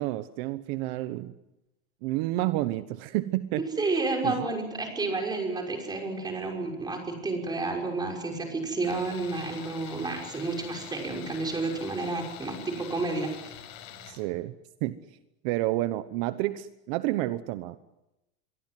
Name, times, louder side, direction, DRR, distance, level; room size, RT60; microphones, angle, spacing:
voice 1, 0.0-1.3 2.0-3.9 4.2-4.4 14.0-14.5 14.8-15.0 15.4-17.8, right 16 dB, 65° right, 12 dB, 1.1 m, -30 dB
voice 2, 3.8-13.6, right 3 dB, 15° right, 1 dB, 5.7 m, -31 dB
Tools, 8.8-14.2, left 9 dB, 70° left, 6.7 m, -45 dB
27.0 x 23.5 x 7.6 m, 0.93 s
cardioid pair, 160°, 31 cm